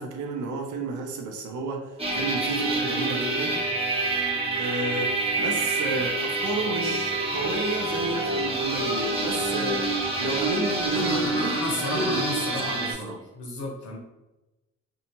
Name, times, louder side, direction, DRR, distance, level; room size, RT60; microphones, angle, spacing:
voice 1, 0.0-3.6 4.6-9.9 10.2-11.6 11.8-13.2, right 3 dB, 75° right, 2 dB, 0.6 m, -31 dB
sound 1, 2.0-12.9, right 2 dB, 20° right, 0.8 m, -27 dB
voice 2, 11.0-14.0, left 2 dB, 80° left, -1 dB, 0.8 m, -33 dB
2.7 x 2.2 x 2.9 m, 1.0 s
cardioid pair, 90°, 30 cm